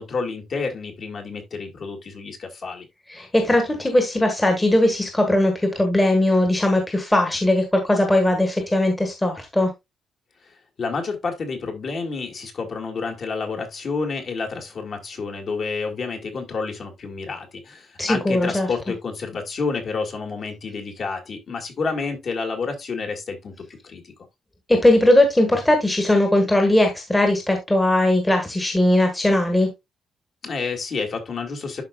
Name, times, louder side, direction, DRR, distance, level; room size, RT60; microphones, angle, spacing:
voice 1, 0.0-2.9 10.8-23.5 23.8-24.1 30.4-31.8, left 4 dB, 40° left, 2.0 m, -29 dB
voice 2, 3.1-9.7 18.0-18.7 24.7-29.7, left 1 dB, 10° left, 1.4 m, -19 dB
11.5 x 4.9 x 2.3 m
cardioid pair, 175°, 0 cm